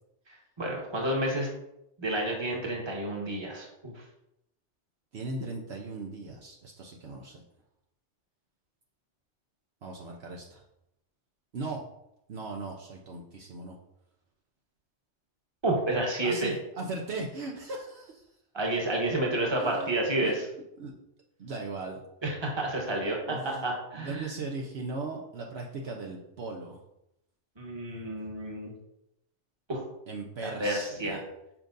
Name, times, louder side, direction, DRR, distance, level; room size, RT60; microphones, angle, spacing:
voice 1, 0.6-1.5 2.0-3.9 15.6-16.5 18.5-20.4 22.2-24.3 27.6-28.7 29.7-29.8 30.4-31.2, right 1 dB, 25° right, -1 dB, 1.2 m, -30 dB
voice 2, 5.1-7.4 9.8-10.6 11.5-11.8 12.3-13.8 16.2-18.2 19.6-19.9 20.2-20.4 20.8-20.9 21.4-22.0 23.3-26.8 30.1-31.2, right 3 dB, 65° right, 0 dB, 1.0 m, -38 dB
7.3 x 5.1 x 2.6 m, 0.83 s
omnidirectional pair, 1.2 m